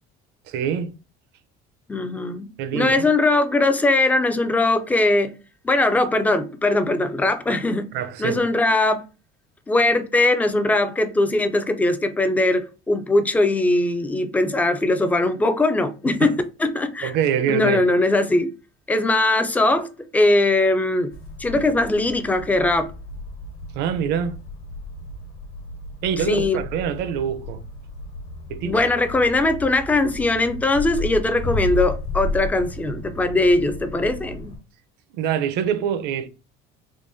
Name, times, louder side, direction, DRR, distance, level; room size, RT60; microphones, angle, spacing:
voice 1, 0.5-0.9 2.6-3.1 7.5-7.6 7.9-8.4 16.2-16.3 17.0-17.8 21.5-21.6 23.7-24.4 26.0-27.6 28.5-28.8 35.1-36.3, right 8 dB, 65° right, 0.6 m, -25 dB
voice 2, 1.9-2.5 2.7-5.3 5.6-7.9 8.2-9.0 9.7-17.1 17.5-18.5 18.9-21.1 21.4-22.9 26.2-26.6 28.6-34.5, left 2 dB, 10° left, 0.3 m, -20 dB
sound 1, 21.1-34.6, left 2 dB, 55° left, 1.1 m, -33 dB
3.7 x 3.0 x 2.6 m
cardioid pair, 145°, 19 cm